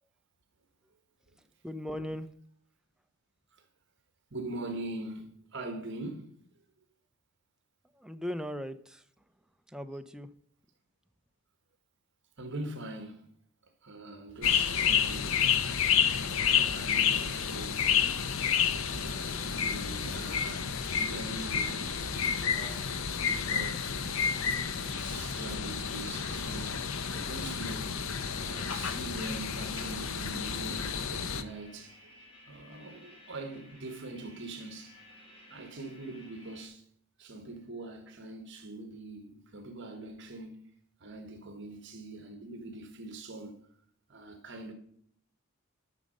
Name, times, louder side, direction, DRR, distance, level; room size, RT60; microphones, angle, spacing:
voice 1, 1.6-2.3 8.0-9.0 9.7-10.3 19.4-19.5, equal, 5° right, 0.4 m, -38 dB
voice 2, 4.3-6.3 12.4-13.3 13.8-15.4 16.2-18.4 18.8-20.6 20.9-22.9 23.2-23.9 24.8-26.9 27.1-28.1 28.4-32.1 32.5-35.0 35.5-36.8 37.2-40.7 41.0-43.6 44.1-44.7, right 2 dB, 55° right, 1.3 m, -43 dB
sound 1, 14.4-31.4, left 7 dB, 65° left, 0.7 m, -30 dB
sound 2, 17.0-36.7, left 1 dB, 25° left, 3.1 m, -56 dB
11.0 x 6.5 x 5.3 m
head